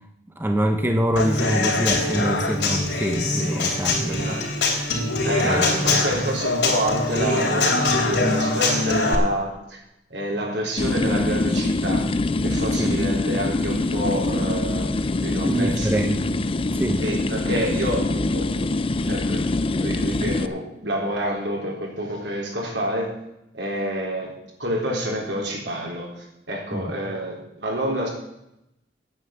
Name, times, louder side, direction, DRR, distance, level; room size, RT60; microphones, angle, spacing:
voice 1, 0.4-4.3 5.4-5.7 12.6-13.0 15.4-16.3 16.7-17.0 26.7-26.9, equal, 10° right, 6 dB, 0.8 m, -25 dB
Human voice / Acoustic guitar / Drum, 1.2-9.1, left 2 dB, 75° left, 3.2 m, -23 dB
voice 2, 4.1-4.5 5.2-9.8 10.1-12.1 12.4-16.1 17.0-18.7 19.0-19.5 19.8-23.1 23.5-24.3 24.6-28.1, right 1 dB, 70° right, -1 dB, 3.9 m, -28 dB
sound 1, 10.8-20.5, left 2 dB, 30° left, 0.5 m, -24 dB
9.4 x 9.1 x 7.8 m, 0.84 s
head